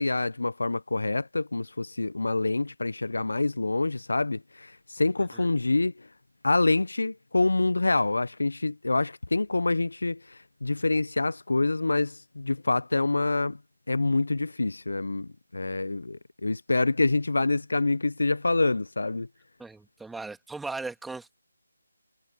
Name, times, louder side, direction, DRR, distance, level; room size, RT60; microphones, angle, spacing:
voice 1, 0.0-6.1 6.4-13.6 13.9-19.3, left 2 dB, 70° left, 0.9 m, -26 dB
voice 2, 19.6-21.4, right 3 dB, 5° right, 2.6 m, -38 dB
figure-of-eight pair, 155°, 0 cm